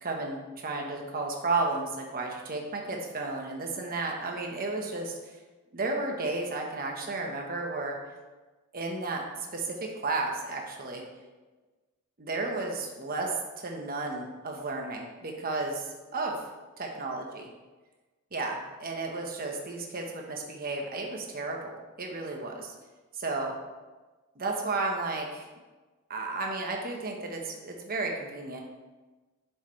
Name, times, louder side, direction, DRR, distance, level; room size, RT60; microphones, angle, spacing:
voice 1, 0.0-5.4 5.7-8.0 8.7-11.0 12.2-16.4 16.8-17.4 18.3-22.7 23.1-23.5 24.3-25.5 26.1-28.6, right 3 dB, 40° right, 1 dB, 1.1 m, -33 dB
8.0 x 6.5 x 3.2 m, 1.2 s
head